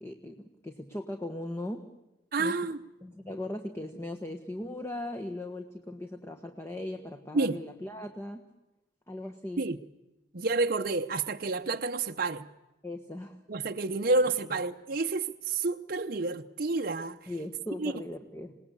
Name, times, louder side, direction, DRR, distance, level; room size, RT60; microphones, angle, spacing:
voice 1, 0.0-1.9 2.4-2.5 3.0-8.5 9.1-9.6 12.8-13.4 17.3-18.6, left 1 dB, 15° left, 1.4 m, -38 dB
voice 2, 2.3-2.8 7.3-7.6 9.6-9.8 10.3-12.5 13.5-17.3 17.8-17.9, right 3 dB, 50° right, 0.9 m, -29 dB
27.5 x 19.0 x 8.2 m
head